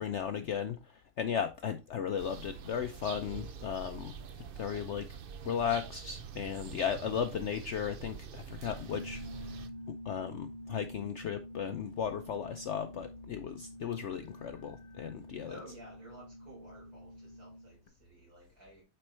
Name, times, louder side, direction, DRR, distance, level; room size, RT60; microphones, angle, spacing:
voice 1, 0.0-4.2 4.6-5.1 5.4-9.5 9.9-15.6, left 8 dB, 65° left, 0.7 m, -36 dB
sound 1, 2.2-9.7, right 7 dB, 80° right, 0.5 m, -46 dB
sound 2, 8.6-17.9, left 1 dB, 40° left, 1.1 m, -48 dB
voice 2, 15.5-18.8, right 1 dB, 65° right, 4.8 m, -53 dB
9.0 x 4.4 x 3.2 m
omnidirectional pair, 1.7 m